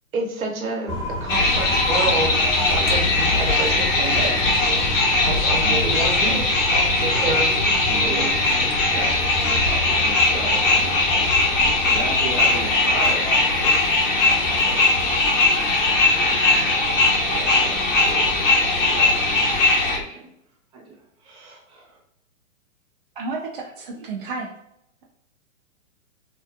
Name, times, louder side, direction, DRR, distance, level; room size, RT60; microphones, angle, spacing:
voice 1, 0.1-2.4 2.7-4.3 5.2-6.4 7.0-7.5 7.9-8.4, right 3 dB, 85° right, 2 dB, 0.9 m, -28 dB
sound 1, 0.9-20.0, left 1 dB, 35° left, 1.2 m, -31 dB
sound 2, 1.3-20.0, left 2 dB, 65° left, 1.0 m, -20 dB
voice 2, 4.3-4.9 5.8-13.7 14.1-15.2 16.2-18.4 18.8-20.3 20.7-22.0, right 2 dB, 10° right, -5 dB, 0.7 m, -36 dB
voice 3, 23.2-24.5, right 4 dB, 40° right, -3 dB, 0.4 m, -32 dB
2.6 x 2.3 x 2.3 m, 0.76 s
hypercardioid pair, 145°, 41 cm